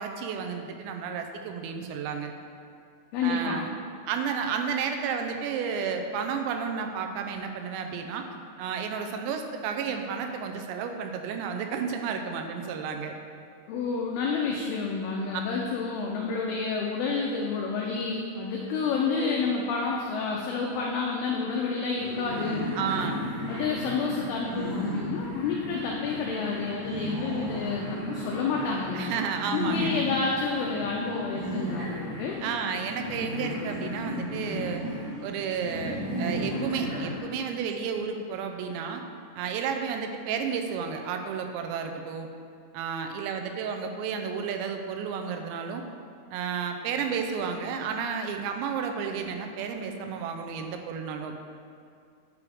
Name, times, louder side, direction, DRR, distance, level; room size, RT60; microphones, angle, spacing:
voice 1, 0.0-2.3 3.2-3.7 4.1-8.2 8.6-13.1 15.3-15.4 22.8-23.3 28.9-29.9 32.4-34.8 35.2-39.0 39.3-42.3 42.7-45.8 46.3-51.4, right 6 dB, 85° right, 5 dB, 2.9 m, -32 dB
voice 2, 3.1-3.6 13.7-22.7 23.5-29.3 29.5-32.4, left 4 dB, 80° left, -1 dB, 2.3 m, -29 dB
sound 1, 22.0-37.2, equal, 60° right, 1.3 m, -34 dB
9.4 x 6.8 x 3.6 m, 2.3 s
omnidirectional pair, 5.0 m